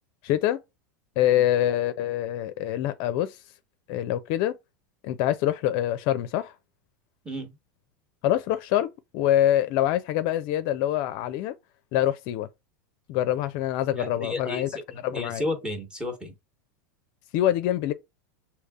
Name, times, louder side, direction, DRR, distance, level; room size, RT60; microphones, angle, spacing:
voice 1, 0.2-0.6 1.2-3.4 3.9-4.5 5.0-6.5 8.2-11.5 11.9-12.5 13.1-14.7 15.0-15.4 17.3-17.9, left 12 dB, 50° left, 0.5 m, -25 dB
voice 2, 13.9-16.3, left 1 dB, 10° right, 1.1 m, -33 dB
6.4 x 2.8 x 2.3 m
supercardioid pair, 125°, 10 cm